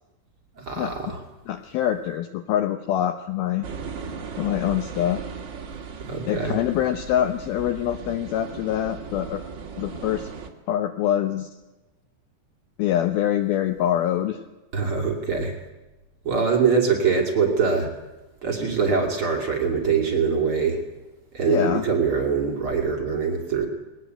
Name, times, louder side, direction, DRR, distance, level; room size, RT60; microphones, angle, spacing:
voice 1, 0.6-1.2 6.1-6.6 14.7-15.6 16.2-17.9 18.4-20.8 21.3-23.7, right 5 dB, 35° right, 1 dB, 3.1 m, -23 dB
voice 2, 1.5-3.7 4.4-5.2 6.3-9.4 9.8-10.3 10.7-11.5 12.8-14.4 21.5-21.8, left 11 dB, 75° left, 9 dB, 2.3 m, -24 dB
sound 1, 3.6-10.5, right 6 dB, 55° right, 1.3 m, -37 dB
21.0 x 19.0 x 8.0 m, 1.1 s
omnidirectional pair, 5.1 m